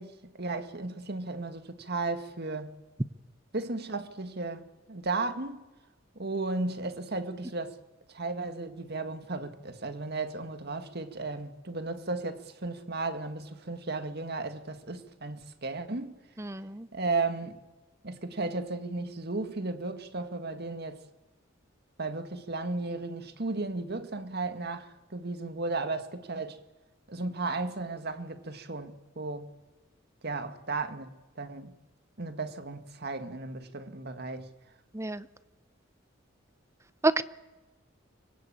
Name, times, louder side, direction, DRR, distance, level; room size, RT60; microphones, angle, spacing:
voice 1, 0.0-2.8 3.5-4.6 4.9-5.6 6.2-7.8 8.1-16.2 16.9-17.6 18.0-21.0 22.0-26.6 27.1-29.5 30.2-31.8 32.2-34.5, right 3 dB, 55° right, 1.9 m, -35 dB
voice 2, 16.4-16.9 34.9-35.2 37.0-37.2, right 2 dB, 15° right, 0.8 m, -28 dB
25.0 x 21.0 x 9.0 m
head